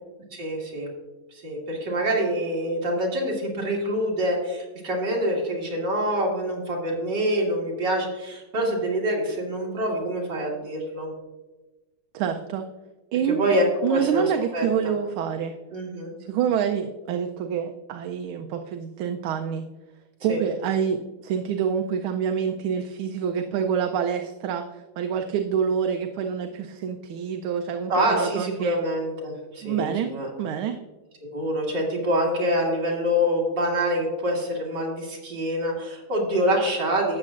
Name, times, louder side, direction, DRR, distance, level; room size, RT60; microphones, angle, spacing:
voice 1, 0.3-0.9 1.4-11.1 13.3-14.2 14.5-14.7 15.7-16.1 20.3-20.4 27.9-30.3 31.3-37.2, equal, 55° right, -2 dB, 2.9 m, -26 dB
voice 2, 12.1-12.6 13.1-13.5 13.8-15.5 16.3-19.6 20.2-28.8 29.6-30.1 30.4-30.8, right 8 dB, 80° right, 5 dB, 1.4 m, -27 dB
12.5 x 8.5 x 2.5 m, 1.2 s
omnidirectional pair, 2.3 m